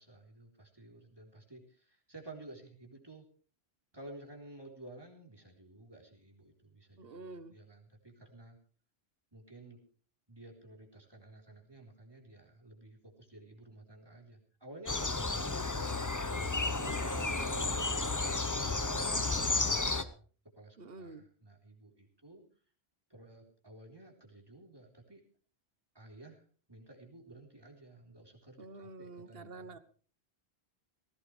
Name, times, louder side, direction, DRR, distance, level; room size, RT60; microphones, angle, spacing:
voice 1, 0.0-3.3 3.9-8.6 9.3-9.8 10.3-16.8 17.3-18.3 18.6-20.3 20.5-22.4 23.1-25.2 25.9-29.8, right 2 dB, 25° right, 0 dB, 3.9 m, -53 dB
voice 2, 7.0-7.5 16.8-17.4 18.9-19.5 20.8-21.2 28.6-29.8, right 3 dB, 70° right, 13 dB, 1.4 m, -48 dB
sound 1, 14.9-20.0, left 3 dB, 20° left, 0.8 m, -32 dB
19.0 x 17.0 x 3.3 m, 0.41 s
omnidirectional pair, 1.1 m